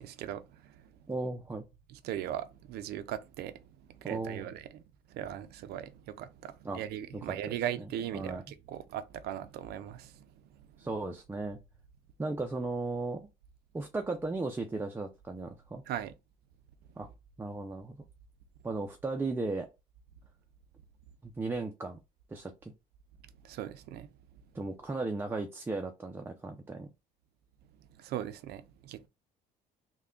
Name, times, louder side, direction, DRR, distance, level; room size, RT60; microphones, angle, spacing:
voice 1, 0.0-1.0 1.9-3.6 3.9-4.8 5.1-10.6 15.9-16.1 23.4-24.1 28.0-29.1, right 11 dB, 75° right, 0.5 m, -39 dB
voice 2, 1.1-1.6 4.0-4.5 6.6-6.8 7.1-7.3 7.8-7.9 8.1-8.4 10.8-11.6 12.2-13.2 13.7-15.8 17.0-17.1 17.4-18.0 18.6-19.7 21.2-22.0 22.3-22.7 24.5-26.9, right 3 dB, 15° right, 0.4 m, -36 dB
3.3 x 2.2 x 3.6 m
cardioid pair, 110°, 17 cm